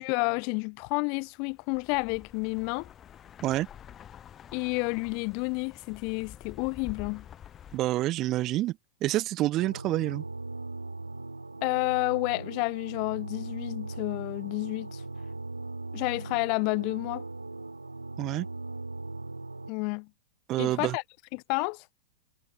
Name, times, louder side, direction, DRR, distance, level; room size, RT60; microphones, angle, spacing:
voice 1, 0.0-2.9 4.5-7.3 11.6-15.0 15.9-17.2 19.7-20.1 20.6-21.0 21.3-21.8, left 36 dB, 45° left, 0.5 m, -30 dB
sound 1, 1.5-7.8, left 9 dB, 25° left, 4.4 m, -48 dB
voice 2, 7.7-8.8 9.0-10.2 18.2-18.5 20.5-21.0, right 15 dB, 35° right, 0.6 m, -27 dB
sound 2, 9.6-19.7, right 2 dB, 85° right, 0.8 m, -39 dB
figure-of-eight pair, 100°, 0 cm